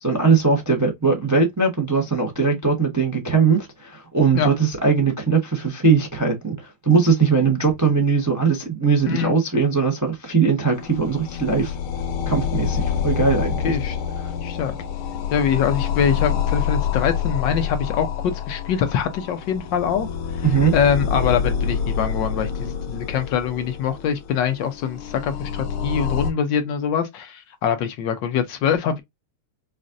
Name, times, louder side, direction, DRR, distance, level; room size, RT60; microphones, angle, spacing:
voice 1, 0.0-11.8 12.3-13.8 14.2-14.3 20.4-20.7, right 5 dB, 30° right, 0.3 m, -20 dB
sound 1, 10.7-26.3, left 7 dB, 85° left, 1.7 m, -27 dB
voice 2, 13.6-14.0 14.4-14.7 15.3-20.1 20.7-29.0, left 7 dB, 70° left, 1.2 m, -23 dB
5.1 x 2.5 x 2.5 m
omnidirectional pair, 2.3 m